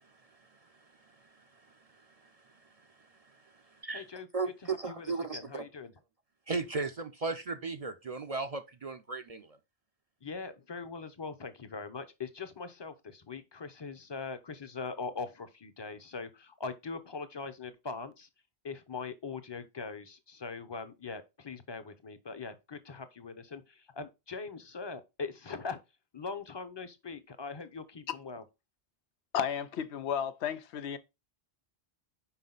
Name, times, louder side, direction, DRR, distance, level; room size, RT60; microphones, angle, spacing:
voice 1, 0.0-4.0 4.3-5.6 6.5-9.6, right 4 dB, 45° right, 0.6 m, -38 dB
voice 2, 3.9-4.3 4.6-5.9 10.2-18.3 18.6-25.8 26.1-28.4, left 4 dB, 30° left, 0.6 m, -41 dB
voice 3, 29.3-31.0, left 8 dB, 90° left, 0.9 m, -33 dB
5.7 x 4.9 x 3.9 m
omnidirectional pair, 1.1 m